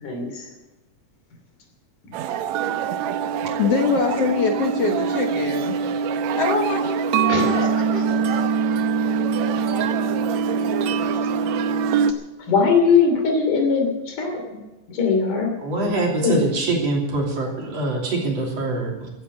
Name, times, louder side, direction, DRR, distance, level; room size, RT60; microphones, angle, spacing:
voice 1, 0.0-0.5 7.3-7.5 12.5-14.4 14.9-15.9 16.2-16.4, left 5 dB, 75° left, 3 dB, 4.4 m, -20 dB
sound 1, 2.1-12.1, right 6 dB, 70° right, 1.9 m, -23 dB
voice 2, 3.5-5.8 6.3-8.5, left 4 dB, 55° left, 2 dB, 2.2 m, -24 dB
voice 3, 15.6-19.1, right 2 dB, 50° right, 0 dB, 4.0 m, -24 dB
15.5 x 9.9 x 7.6 m, 1.1 s
omnidirectional pair, 3.7 m